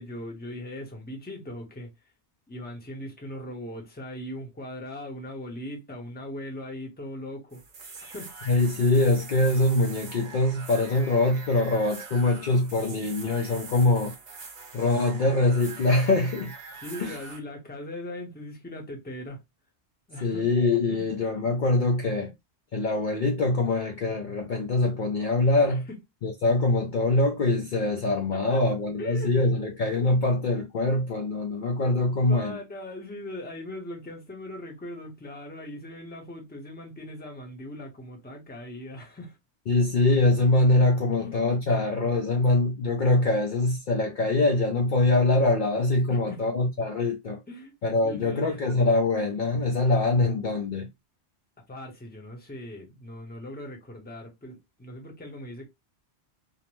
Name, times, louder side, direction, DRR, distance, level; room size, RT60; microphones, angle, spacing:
voice 1, 0.0-1.9 2.5-7.6 8.0-8.5 16.7-19.4 20.1-20.5 20.9-21.1 25.7-26.0 28.3-28.6 29.0-29.3 29.5-29.7 32.3-39.4 41.2-41.6 46.1-46.4 47.5-47.7 48.0-48.6 51.7-55.7, left 1 dB, 10° left, 0.7 m, -39 dB
sound 1, 7.5-17.4, right 4 dB, 45° right, 0.7 m, -43 dB
voice 2, 8.5-14.1 14.7-16.5 17.0-17.2 20.2-22.3 22.7-25.8 26.2-32.6 39.7-47.4 47.8-50.9, left 2 dB, 55° left, 0.6 m, -23 dB
2.6 x 2.1 x 3.0 m
omnidirectional pair, 1.1 m